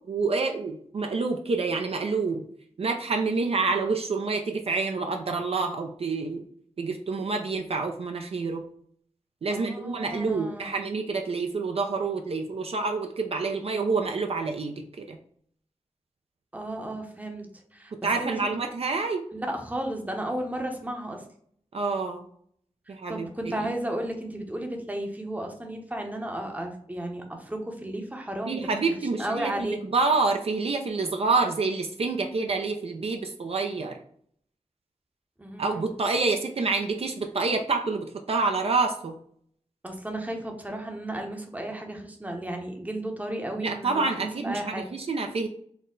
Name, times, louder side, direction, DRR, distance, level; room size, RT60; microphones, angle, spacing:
voice 1, 0.1-2.4 2.8-6.4 6.8-8.6 9.4-15.2 18.0-19.3 21.7-22.3 22.9-23.5 28.5-34.0 35.6-39.2 43.6-45.5, right 4 dB, 55° right, 4 dB, 0.4 m, -27 dB
voice 2, 9.5-10.8 16.5-17.9 18.2-18.3 19.3-21.2 22.9-28.6 29.2-29.8 35.4-35.9 39.8-44.9, right 1 dB, 15° right, 3 dB, 0.7 m, -34 dB
4.1 x 2.1 x 3.7 m, 0.64 s
wide cardioid pair, 95°, 12 cm